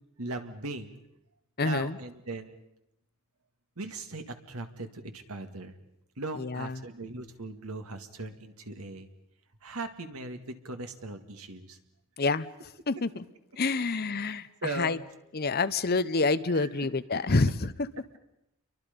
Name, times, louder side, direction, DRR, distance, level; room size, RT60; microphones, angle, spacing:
voice 1, 0.2-1.0 1.6-2.6 3.8-5.7 6.2-9.1 9.6-11.8 14.6-15.0 16.5-16.7, right 2 dB, 80° right, 7 dB, 2.0 m, -39 dB
voice 2, 1.6-2.0 6.3-6.9 12.2-12.5 12.9-13.2 13.6-15.0 15.3-17.9, left 3 dB, 45° left, 14 dB, 0.7 m, -28 dB
29.5 x 23.5 x 5.3 m, 0.84 s
head